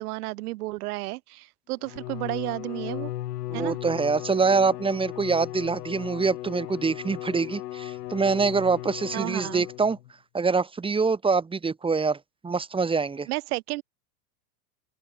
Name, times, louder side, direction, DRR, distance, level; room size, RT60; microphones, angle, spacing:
voice 1, 0.0-3.1 3.5-3.8 9.1-9.7 13.3-13.8, right 20 dB, 70° right, 1.2 m, -32 dB
Bowed string instrument, 1.8-10.1, left 15 dB, 75° left, 4.3 m, -36 dB
voice 2, 3.5-10.0 10.3-12.2 12.4-13.3, right 4 dB, 10° right, 1.7 m, -25 dB
open air
supercardioid pair, 125°, 48 cm